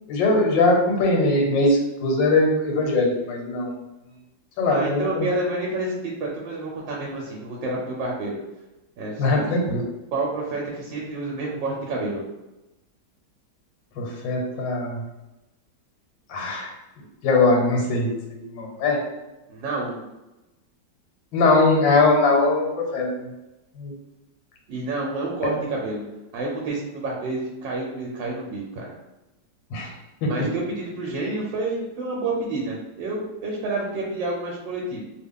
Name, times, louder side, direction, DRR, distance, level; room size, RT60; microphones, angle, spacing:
voice 1, 0.1-3.7 4.6-5.3 9.2-9.8 14.0-15.0 16.3-16.7 17.2-19.0 21.3-23.3 23.8-23.9 29.7-29.9 30.2-30.3, left 2 dB, 85° left, 1 dB, 1.5 m, -21 dB
voice 2, 4.7-8.4 9.0-9.4 10.1-12.2 19.5-20.0 24.7-26.0 26.3-28.9 30.3-35.1, right 2 dB, 85° right, -3 dB, 1.3 m, -29 dB
3.2 x 2.3 x 3.5 m, 1.0 s
omnidirectional pair, 2.0 m